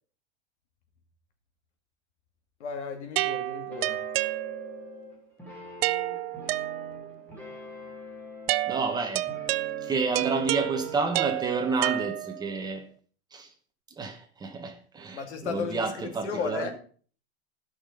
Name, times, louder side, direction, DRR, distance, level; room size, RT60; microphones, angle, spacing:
voice 1, 2.6-4.0 15.1-16.7, left 5 dB, 90° left, 2.4 m, -34 dB
sound 1, 3.2-4.9 5.8-7.2 8.5-12.6, right 18 dB, 65° right, 0.5 m, -30 dB
sound 2, 3.7-11.4, left 1 dB, 5° left, 3.6 m, -45 dB
voice 2, 8.7-9.3 9.8-12.8 13.3-13.5 14.0-16.7, right 4 dB, 10° right, 1.5 m, -30 dB
14.5 x 6.0 x 5.2 m
supercardioid pair, 150°, 33 cm